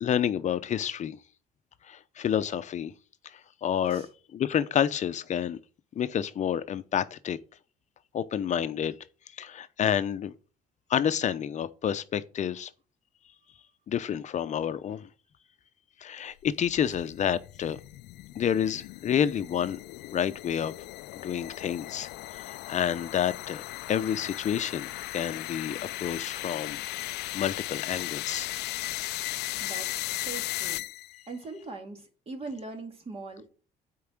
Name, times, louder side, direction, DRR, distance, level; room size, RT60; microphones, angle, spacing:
voice 1, 0.0-1.2 1.9-2.9 3.3-4.1 4.3-5.6 6.0-7.4 8.1-9.0 9.4-10.3 10.9-12.7 13.9-15.1 16.0-17.8 18.4-19.8 20.1-20.7 21.1-26.8 27.3-28.5, left 9 dB, 45° left, 0.7 m, -29 dB
sound 1, 16.5-31.3, left 18 dB, 80° left, 0.4 m, -37 dB
voice 2, 29.6-30.8 31.3-33.5, right 3 dB, 35° right, 2.1 m, -41 dB
8.5 x 4.7 x 6.0 m
cardioid pair, 110°, 17 cm